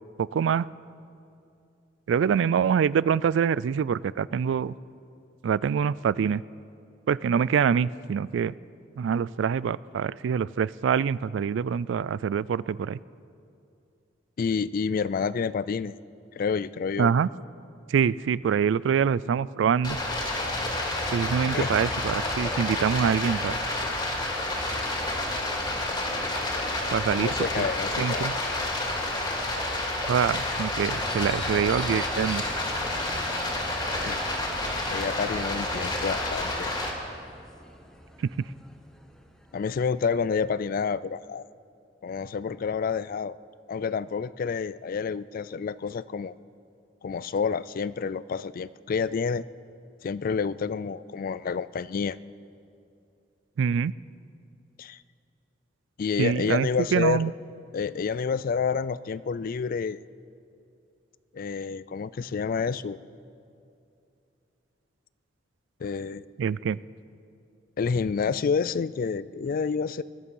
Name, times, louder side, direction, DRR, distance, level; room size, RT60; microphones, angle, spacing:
voice 1, 0.2-0.7 2.1-4.7 5.4-6.4 7.1-8.5 9.0-13.0 17.0-17.3 17.9-20.0 21.1-23.6 26.9-27.7 28.0-28.3 30.1-32.4 38.2-38.3 53.6-53.9 56.2-57.3 66.4-66.8, right 7 dB, 70° right, 20 dB, 0.3 m, -25 dB
voice 2, 14.4-16.0 16.4-17.1 21.5-21.7 27.1-28.3 34.0-34.2 34.9-36.7 39.5-41.5 42.0-43.4 43.7-46.3 47.0-49.4 50.0-52.2 54.8-55.0 56.0-57.3 57.7-60.0 61.3-63.0 65.8-66.3 67.8-70.0, left 5 dB, 50° left, 18 dB, 0.3 m, -29 dB
Stream, 19.8-36.9, left 1 dB, 25° left, 2.4 m, -29 dB
sound 1, 31.1-41.0, equal, 5° left, 1.1 m, -46 dB
20.5 x 12.5 x 5.5 m, 2.6 s
head